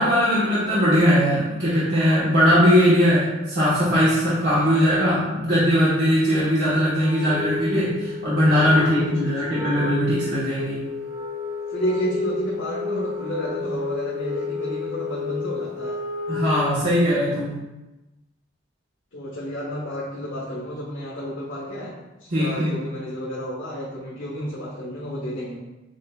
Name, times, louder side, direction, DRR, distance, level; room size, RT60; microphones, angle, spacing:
voice 1, 0.0-10.8 16.3-17.6 22.3-22.7, equal, 60° right, -11 dB, 1.1 m, -20 dB
Wind instrument woodwind instrument, 7.1-16.8, left 4 dB, 15° right, 0.7 m, -31 dB
voice 2, 8.6-9.3 11.7-16.0 19.1-21.9 22.4-25.6, equal, 75° left, -7 dB, 1.2 m, -31 dB
7.3 x 2.7 x 2.3 m, 1.1 s
head